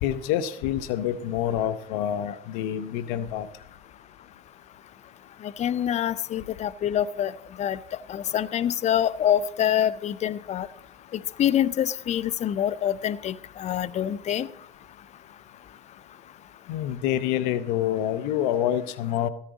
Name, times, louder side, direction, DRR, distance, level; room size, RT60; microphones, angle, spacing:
voice 1, 0.0-3.5 16.7-19.3, left 11 dB, 75° left, 13 dB, 0.9 m, -27 dB
voice 2, 5.6-7.3 7.6-7.8 8.1-10.7 11.4-14.5, left 10 dB, 45° left, 19 dB, 0.7 m, -25 dB
14.5 x 14.5 x 4.1 m, 0.68 s
hypercardioid pair, 70°, 16 cm